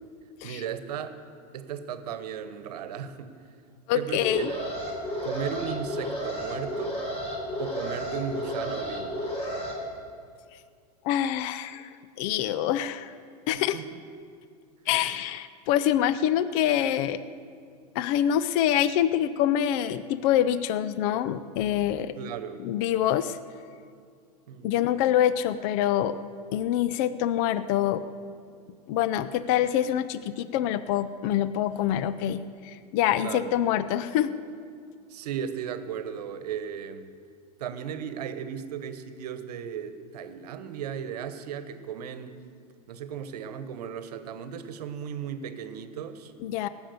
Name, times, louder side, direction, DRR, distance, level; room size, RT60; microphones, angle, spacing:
voice 1, 0.4-1.1 1.5-3.3 3.9-4.7 5.2-7.0 7.6-9.3 13.7-14.0 22.2-22.7 24.5-24.7 33.2-33.6 35.1-37.1 37.6-42.4 42.9-46.3, right 8 dB, 75° right, 11 dB, 1.1 m, -36 dB
voice 2, 3.9-4.5 11.0-11.9 12.2-13.1 13.5-13.8 14.9-17.2 17.9-22.1 22.6-23.4 24.6-26.2 26.5-28.0 28.9-34.3 46.4-46.7, left 11 dB, 55° left, 14 dB, 0.7 m, -25 dB
Alarm, 4.1-9.7, equal, 30° left, 3.8 m, -32 dB
18.0 x 7.2 x 7.9 m, 2.2 s
hypercardioid pair, 105°, 20 cm